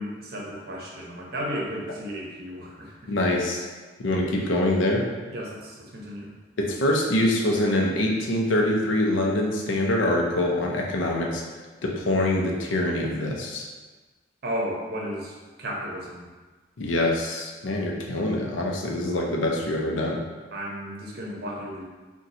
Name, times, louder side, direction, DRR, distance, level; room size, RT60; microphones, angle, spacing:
voice 1, 0.0-3.1 5.3-6.3 14.4-16.3 20.5-21.8, equal, 55° right, -3 dB, 0.6 m, -34 dB
voice 2, 3.1-3.6 4.0-5.0 6.6-11.4 11.8-13.7 16.8-20.2, left 1 dB, 85° left, -1 dB, 0.6 m, -24 dB
2.7 x 2.2 x 4.0 m, 1.3 s
head